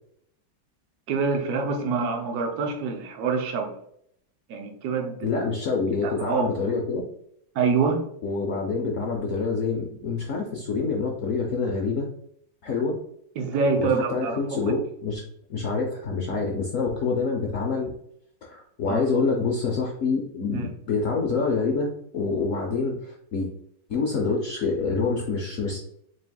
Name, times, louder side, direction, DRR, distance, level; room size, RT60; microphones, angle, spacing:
voice 1, 1.1-3.7 4.5-5.3 6.0-6.5 7.5-8.1 13.4-14.7 18.9-19.0 20.5-20.7, right 5 dB, 65° right, 3 dB, 1.1 m, -26 dB
voice 2, 5.2-7.0 8.2-12.1 12.6-12.9 13.8-15.2 15.5-17.9 18.4-21.9 22.1-23.5 23.9-25.8, left 4 dB, 70° left, 0 dB, 0.7 m, -26 dB
4.8 x 3.4 x 2.2 m, 0.68 s
omnidirectional pair, 2.1 m